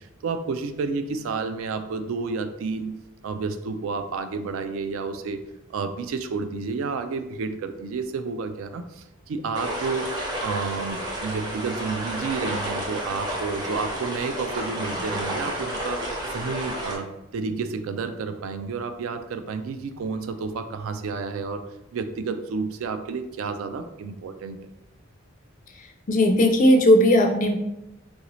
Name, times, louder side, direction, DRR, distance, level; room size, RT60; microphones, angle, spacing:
voice 1, 0.0-3.0 3.2-5.4 5.7-10.1 10.4-16.0 16.3-21.6 21.9-24.6, right 4 dB, 70° right, 9 dB, 0.3 m, -30 dB
sound 1, 9.5-17.0, right 1 dB, 20° right, 0.6 m, -31 dB
voice 2, 26.1-27.6, left 1 dB, 35° left, 3 dB, 0.4 m, -17 dB
3.9 x 2.6 x 3.0 m, 0.91 s
head